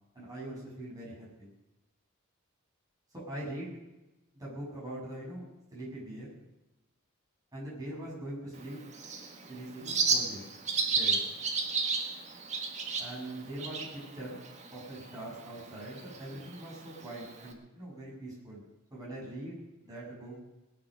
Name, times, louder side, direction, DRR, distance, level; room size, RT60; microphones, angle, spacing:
voice 1, 0.1-1.5 3.1-3.8 4.3-5.4 5.7-6.3 7.5-8.8 9.5-10.4 10.9-11.2 13.0-14.4 14.7-18.6 18.9-20.4, right 1 dB, 15° right, -6 dB, 7.4 m, -42 dB
Bird, 8.5-17.5, right 4 dB, 35° right, 1.6 m, -34 dB
20.5 x 8.8 x 6.5 m, 1.0 s
head